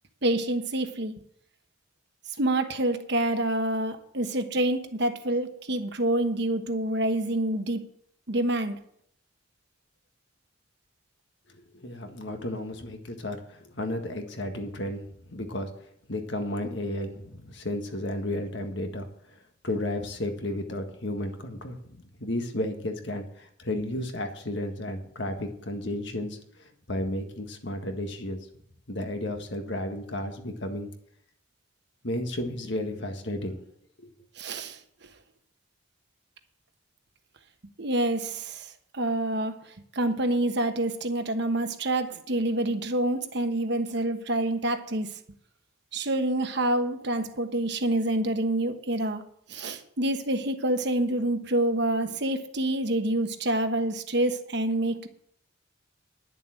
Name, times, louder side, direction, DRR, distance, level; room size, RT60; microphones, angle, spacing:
voice 1, 0.2-1.1 2.4-7.9 8.3-8.8 34.4-34.8 37.8-39.6 39.9-45.1 45.9-49.2 49.5-55.1, right 1 dB, 55° right, 8 dB, 1.2 m, -27 dB
voice 2, 11.5-15.7 16.1-19.4 19.6-28.5 28.9-30.9 32.0-33.7 34.0-34.1, left 1 dB, 60° left, 5 dB, 1.7 m, -33 dB
10.5 x 7.2 x 7.6 m, 0.67 s
head